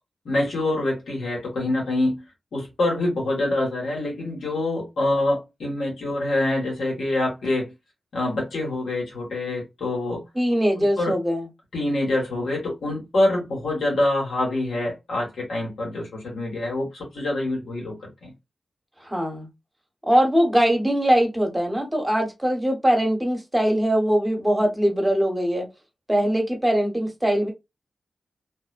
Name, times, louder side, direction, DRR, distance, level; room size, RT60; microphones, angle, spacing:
voice 1, 0.2-2.2 2.5-7.7 8.1-10.2 10.8-11.1 11.7-18.3, left 2 dB, 90° left, 1.4 m, -25 dB
voice 2, 10.4-11.4 19.0-19.5 20.0-25.7 26.1-27.5, equal, 15° right, 1.1 m, -21 dB
2.6 x 2.1 x 2.4 m
cardioid pair, 50°, 0 cm